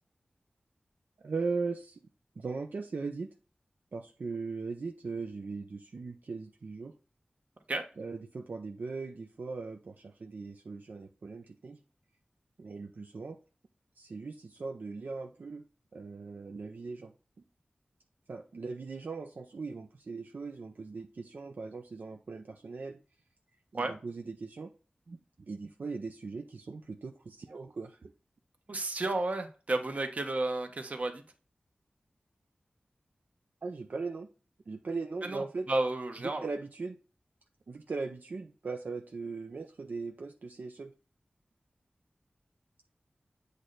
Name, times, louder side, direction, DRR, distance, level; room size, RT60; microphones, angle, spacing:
voice 1, 1.2-2.0 2.4-3.3 3.9-6.9 8.0-11.8 12.6-13.4 14.0-15.6 15.9-17.1 18.3-23.0 23.7-24.7 25.1-25.2 25.5-28.1 33.6-34.3 34.7-35.7 36.4-37.0 37.7-40.9, right 4 dB, 75° right, 4 dB, 0.6 m, -39 dB
voice 2, 28.7-31.2 35.2-36.5, right 2 dB, 50° right, 6 dB, 1.1 m, -32 dB
8.2 x 3.3 x 4.0 m, 0.35 s
wide cardioid pair, 80°, 3 cm